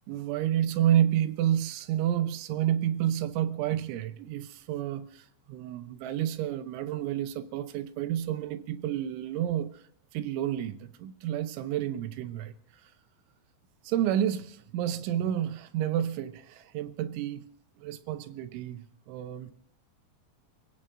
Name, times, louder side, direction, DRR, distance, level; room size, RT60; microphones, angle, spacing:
voice 1, 0.1-9.8 10.1-12.9 13.8-17.5 17.8-19.5, right 11 dB, 80° right, 3.1 m, -30 dB
29.0 x 17.0 x 2.6 m
omnidirectional pair, 5.6 m